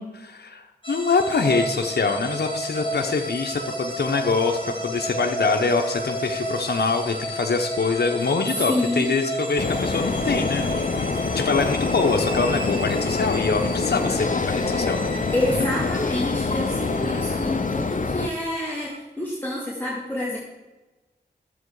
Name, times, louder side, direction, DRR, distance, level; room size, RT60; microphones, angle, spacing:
voice 1, 0.0-11.0 11.3-15.1, left 4 dB, 70° left, 3 dB, 0.9 m, -24 dB
sound 1, 0.8-19.0, right 1 dB, 30° left, 2.0 m, -33 dB
voice 2, 8.7-9.1 15.3-20.4, left 1 dB, 10° left, -6 dB, 2.6 m, -27 dB
sound 2, 9.6-18.3, left 4 dB, 45° left, 0.8 m, -26 dB
12.0 x 7.8 x 4.8 m, 1.1 s
cardioid pair, 45°, 18 cm